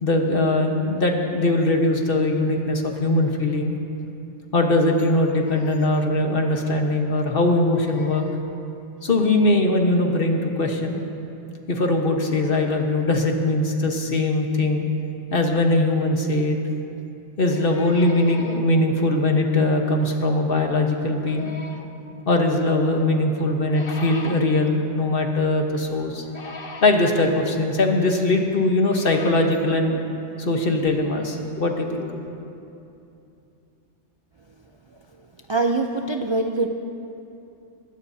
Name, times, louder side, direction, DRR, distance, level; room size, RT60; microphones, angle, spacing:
voice 1, 0.0-3.8 4.5-8.4 9.0-11.0 11.7-14.9 15.3-16.6 17.4-21.8 22.3-30.0 30.4-32.1, left 2 dB, 50° left, 3 dB, 1.3 m, -21 dB
voice 2, 35.5-36.7, right 3 dB, 40° right, 4 dB, 0.4 m, -23 dB
21.5 x 16.5 x 2.8 m, 2.7 s
omnidirectional pair, 1.2 m